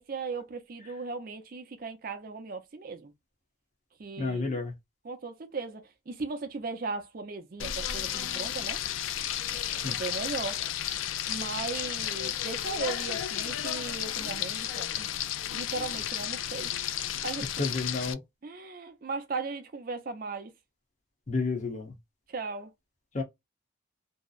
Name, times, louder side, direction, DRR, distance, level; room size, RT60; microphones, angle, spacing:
voice 1, 0.0-3.1 4.0-4.6 5.0-8.8 9.5-10.6 11.3-15.1 15.5-17.5 18.4-20.5 22.3-22.7, right 4 dB, 50° right, 0.5 m, -37 dB
voice 2, 4.2-4.7 9.8-10.0 17.6-18.2 21.3-21.9 23.1-23.2, left 3 dB, 40° left, 0.7 m, -30 dB
Frying (food), 7.6-18.1, left 10 dB, 85° left, 0.3 m, -33 dB
2.7 x 2.0 x 2.3 m
head